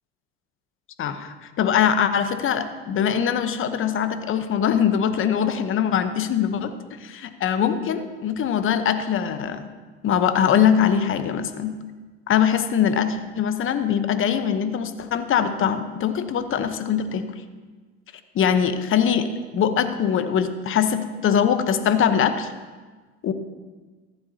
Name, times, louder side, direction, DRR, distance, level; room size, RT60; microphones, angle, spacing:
voice 1, 1.0-9.7 10.0-11.7 12.3-17.2 18.3-19.3 19.5-22.5 23.2-23.3, left 8 dB, 40° left, 10 dB, 0.9 m, -22 dB
14.5 x 11.0 x 2.8 m, 1.3 s
hypercardioid pair, 85°, 32 cm